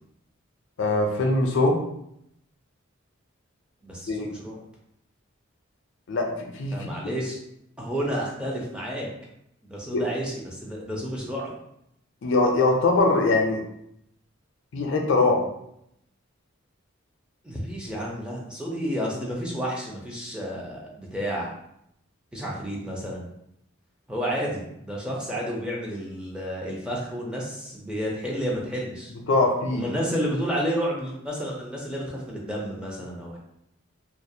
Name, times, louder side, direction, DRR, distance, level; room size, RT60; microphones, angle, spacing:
voice 1, 0.8-1.8 4.1-4.3 6.1-6.9 9.9-10.0 12.2-13.6 14.7-15.5 29.3-29.9, left 2 dB, 60° left, 2 dB, 0.4 m, -22 dB
voice 2, 3.8-4.6 6.7-7.4 7.8-9.1 9.7-11.5 17.4-21.5 22.3-23.3 24.1-29.1 29.7-33.4, equal, 5° right, -4 dB, 0.4 m, -31 dB
2.3 x 2.0 x 2.6 m, 0.77 s
head